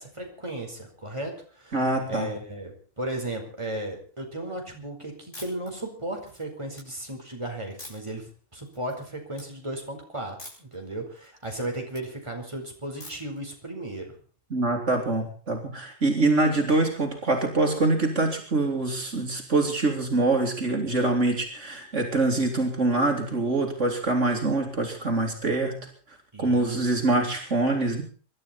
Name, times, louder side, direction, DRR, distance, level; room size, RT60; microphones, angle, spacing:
voice 1, 0.0-1.8 2.1-14.2 26.3-26.9, right 1 dB, 25° right, 2 dB, 4.8 m, -35 dB
voice 2, 1.7-2.3 14.5-25.9 26.4-28.0, right 2 dB, 70° right, 2 dB, 3.5 m, -24 dB
sound 1, 5.3-5.7 6.2-6.8 7.8-8.2 8.7-9.0 9.3-9.5 10.4-10.7 11.1-12.0 13.0-13.4, left 1 dB, 70° left, 8.1 m, -45 dB
26.5 x 12.5 x 4.3 m, 0.42 s
omnidirectional pair, 1.3 m